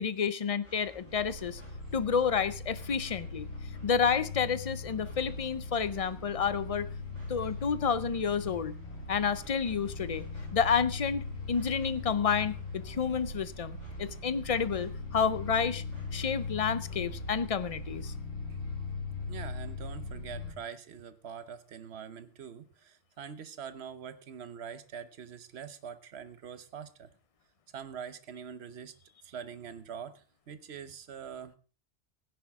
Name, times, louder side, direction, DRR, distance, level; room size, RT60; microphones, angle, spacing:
voice 1, 0.0-1.6 1.9-3.5 3.8-6.9 7.3-8.7 9.1-10.2 10.5-15.8 16.1-18.1, left 6 dB, 40° left, 15 dB, 0.5 m, -30 dB
sound 1, 0.6-18.2, equal, 85° right, 7.9 m, -57 dB
sound 2, 1.0-20.5, left 3 dB, 65° left, 2.2 m, -40 dB
voice 2, 19.3-27.1 27.7-28.9 29.2-31.6, right 7 dB, 65° right, 13 dB, 1.2 m, -44 dB
16.0 x 10.5 x 3.6 m, 0.36 s
omnidirectional pair, 1.2 m